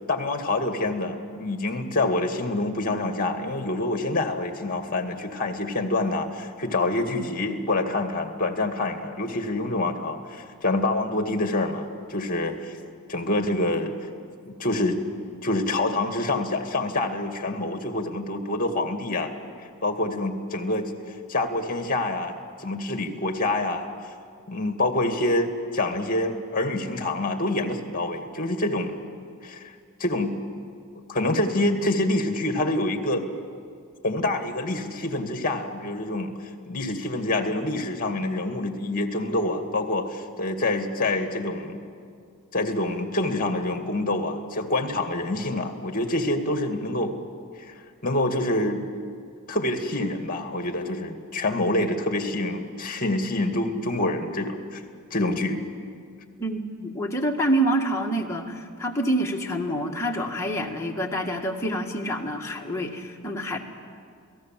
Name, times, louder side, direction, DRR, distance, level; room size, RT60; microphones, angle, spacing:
voice 1, 0.1-12.7 13.1-13.9 14.4-15.0 15.4-19.3 19.8-22.3 22.6-23.9 24.5-28.9 29.4-29.7 30.0-30.4 31.1-33.2 34.0-36.3 36.7-41.8 42.5-47.1 47.6-47.7 48.0-48.9 49.5-54.8 55.1-55.6, left 2 dB, 40° left, 5 dB, 2.1 m, -26 dB
voice 2, 56.4-63.6, right 1 dB, 15° left, -1 dB, 1.9 m, -27 dB
28.5 x 18.0 x 7.6 m, 2.2 s
head